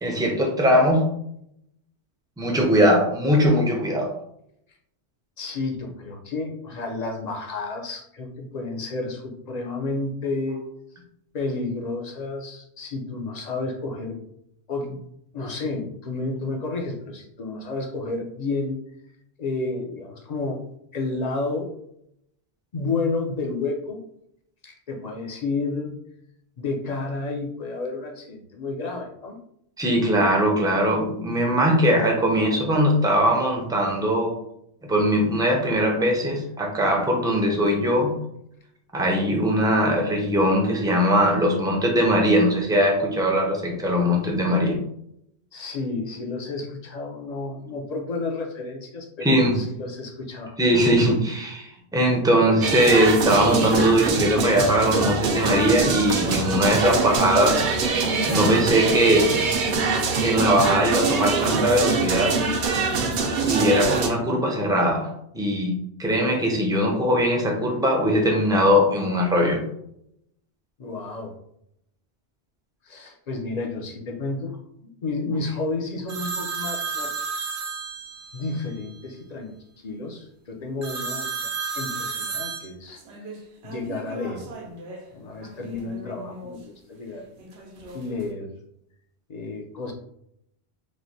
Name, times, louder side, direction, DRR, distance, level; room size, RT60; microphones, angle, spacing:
voice 1, 0.0-1.0 2.4-4.1 29.8-34.3 34.8-38.1 38.9-44.8 49.2-49.5 50.6-57.7 58.3-59.3 60.2-62.4 63.4-65.1 65.3-69.6, equal, 5° right, 0 dB, 0.4 m, -20 dB
voice 2, 5.4-10.6 11.3-14.2 14.7-15.0 15.3-18.8 19.4-20.6 20.9-21.7 22.7-24.0 24.6-26.0 26.6-29.4 45.5-50.6 70.8-71.3 72.8-74.5 74.8-77.1 78.3-84.5 85.1-87.3 87.9-88.6 89.3-89.9, left 3 dB, 45° left, 2 dB, 0.6 m, -31 dB
sound 1, 52.6-64.1, right 4 dB, 60° right, 0.6 m, -23 dB
sound 2, 76.1-78.5 80.8-85.0 85.4-86.6 87.4-88.3, right 4 dB, 85° right, 1.0 m, -33 dB
3.1 x 2.1 x 3.9 m, 0.73 s
omnidirectional pair, 1.1 m